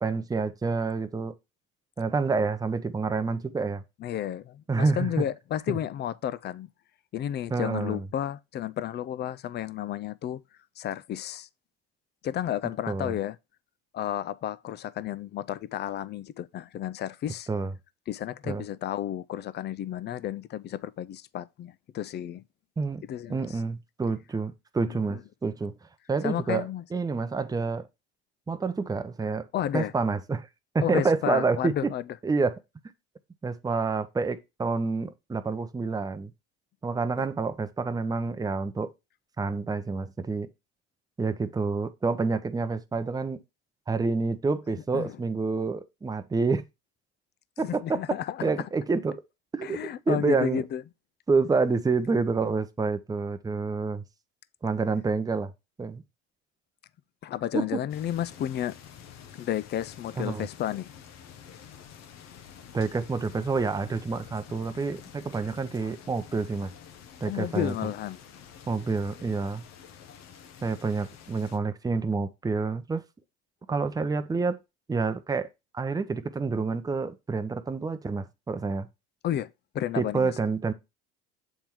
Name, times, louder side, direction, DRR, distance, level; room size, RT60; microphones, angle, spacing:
voice 1, 0.0-1.3 2.0-3.8 4.7-5.3 5.7-5.8 7.5-8.0 12.9-13.1 17.5-17.7 18.4-18.6 22.8-23.0 23.3-25.7 26.1-27.9 28.5-29.5 29.7-30.5 30.7-31.9 32.2-32.6 33.4-36.3 36.8-38.9 39.4-40.5 41.2-43.4 43.9-46.6 47.6-48.0 48.4-49.2 49.5-50.6 51.3-54.0 54.6-55.5 55.8-56.0 57.5-57.8 60.2-60.5 62.7-66.7 67.2-67.7 68.7-69.6 70.6-73.0 73.7-74.6 74.9-75.5 75.7-78.9 79.9-80.7, right 4 dB, 10° right, 0.7 m, -28 dB
voice 2, 4.0-6.7 7.1-10.4 10.8-11.5 12.2-13.4 13.9-17.5 18.1-22.4 23.1-23.5 24.9-25.0 26.2-26.8 29.5-29.9 30.8-32.0 37.2-37.3 44.9-45.1 47.6-48.4 49.6-50.8 57.2-58.7 59.3-60.9 65.8-65.9 67.2-68.2 79.2-79.5 79.7-80.3, left 11 dB, 35° left, 0.4 m, -32 dB
sound 1, 57.9-71.6, left 8 dB, 60° left, 1.0 m, -49 dB
7.2 x 3.6 x 4.5 m
supercardioid pair, 85°, 31 cm